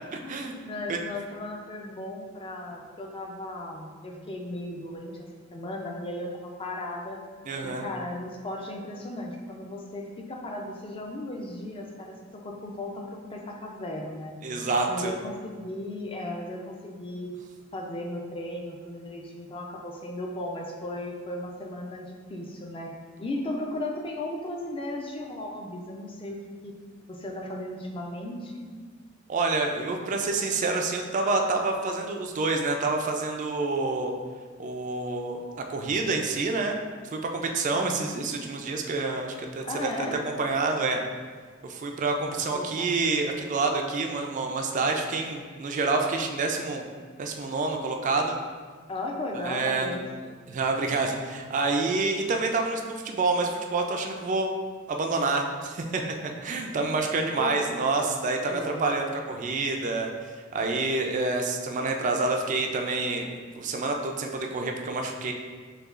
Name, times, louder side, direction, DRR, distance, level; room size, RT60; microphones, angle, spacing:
voice 1, 0.2-7.2 7.6-14.4 14.9-17.3 17.7-22.9 23.2-26.4 26.6-26.8 27.1-28.7 37.7-38.2 39.6-40.2 42.5-43.0 48.9-50.1 57.4-57.5 58.5-58.8, left 1 dB, 25° left, 1 dB, 0.4 m, -36 dB
voice 2, 7.5-7.8 14.4-15.1 29.3-34.1 34.6-35.4 35.7-36.8 37.1-39.9 40.4-41.0 41.6-46.8 47.2-48.4 49.4-50.0 50.5-54.5 54.9-56.0 56.4-60.1 60.5-65.3, right 3 dB, 40° right, 3 dB, 0.3 m, -27 dB
6.4 x 2.3 x 2.4 m, 1.5 s
head